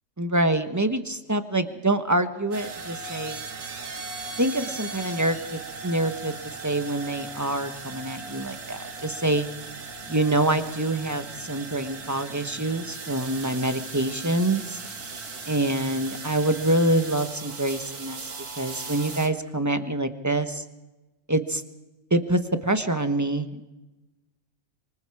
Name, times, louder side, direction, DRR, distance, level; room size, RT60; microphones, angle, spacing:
voice 1, 0.2-3.4 4.4-6.3 6.6-9.5 10.1-14.8 15.5-18.2 18.6-20.6 21.3-21.6 22.1-23.6, right 1 dB, 15° right, 8 dB, 1.1 m, -26 dB
sound 1, 2.5-19.3, right 4 dB, 85° right, 2.4 m, -38 dB
26.5 x 24.5 x 4.8 m, 1.1 s
omnidirectional pair, 1.6 m